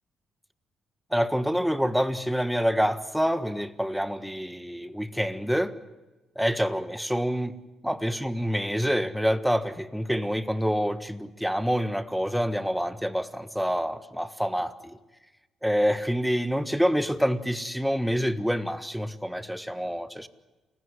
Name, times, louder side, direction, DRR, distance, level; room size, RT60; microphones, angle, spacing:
voice 1, 1.1-5.7 6.3-7.5 7.8-15.0 15.6-20.3, equal, ahead, 13 dB, 1.5 m, -27 dB
28.5 x 16.0 x 9.8 m, 1.2 s
cardioid pair, 90°, 0 cm